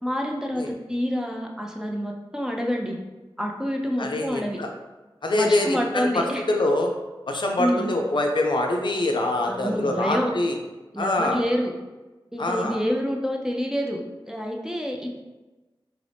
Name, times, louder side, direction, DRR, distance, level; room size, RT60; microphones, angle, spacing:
voice 1, 0.0-3.0 3.4-4.6 5.3-6.4 7.6-8.0 9.5-10.3 10.9-11.7 12.3-14.0 14.3-15.2, equal, 5° right, 0 dB, 0.5 m, -27 dB
voice 2, 4.0-4.7 5.2-6.9 7.3-10.6 11.0-11.4 12.4-12.8, left 1 dB, 60° left, 2 dB, 0.4 m, -24 dB
3.0 x 2.6 x 3.3 m, 1.1 s
wide cardioid pair, 55°, 9 cm